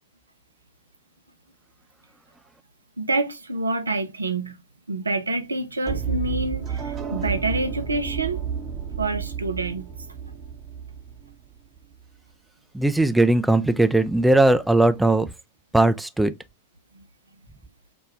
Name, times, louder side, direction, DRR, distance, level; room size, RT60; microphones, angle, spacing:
voice 1, 3.0-4.6 4.9-8.4 9.0-9.9 16.9-17.0, right 2 dB, 80° right, 0.5 m, -27 dB
sound 1, 5.8-11.8, right 7 dB, 30° right, 0.9 m, -31 dB
voice 2, 12.7-15.3 15.7-16.3, right 2 dB, 5° right, 0.4 m, -19 dB
4.9 x 2.2 x 3.2 m
figure-of-eight pair, 90°, 0 cm